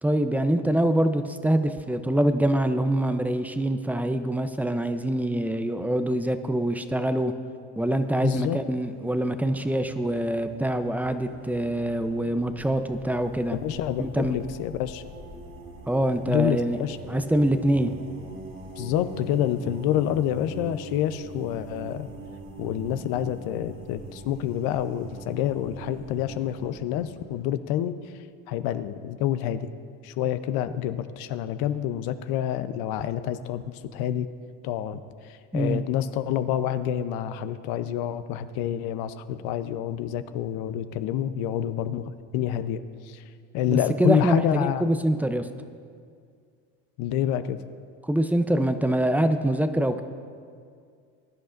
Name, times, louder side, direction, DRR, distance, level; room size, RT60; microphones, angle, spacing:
voice 1, 0.0-7.3 7.8-13.6 14.0-14.4 15.9-16.8 17.1-17.9 35.5-35.8 43.7-45.5 48.0-50.0, right 1 dB, 5° right, 9 dB, 0.6 m, -25 dB
sound 1, 8.0-8.4 8.9-27.4, right 2 dB, 30° right, 1.9 m, -43 dB
voice 2, 8.2-8.6 13.6-15.0 16.3-17.0 18.8-22.1 22.6-28.0 28.5-29.7 30.0-34.3 34.6-43.2 43.5-44.8 47.0-47.6, left 10 dB, 65° left, 11 dB, 0.8 m, -28 dB
21.0 x 11.0 x 2.6 m, 2.2 s
supercardioid pair, 95°, 39 cm